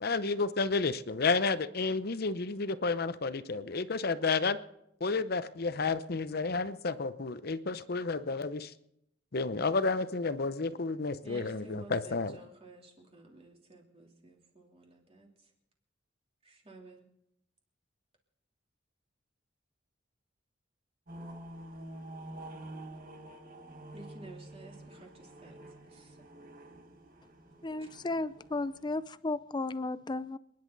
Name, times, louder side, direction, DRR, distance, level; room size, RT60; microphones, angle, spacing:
voice 1, 0.0-4.6 5.0-8.7 9.3-12.4, left 4 dB, 55° left, 13 dB, 0.7 m, -31 dB
voice 2, 11.2-15.3 16.4-17.1 23.9-25.6 25.9-26.2 27.8-27.9, right 2 dB, 30° right, 0 dB, 3.1 m, -52 dB
sound 1, 21.1-29.0, right 1 dB, 50° right, 1.6 m, -48 dB
voice 3, 27.6-30.4, left 2 dB, 25° left, 15 dB, 0.5 m, -34 dB
28.0 x 10.5 x 4.0 m, 0.78 s
head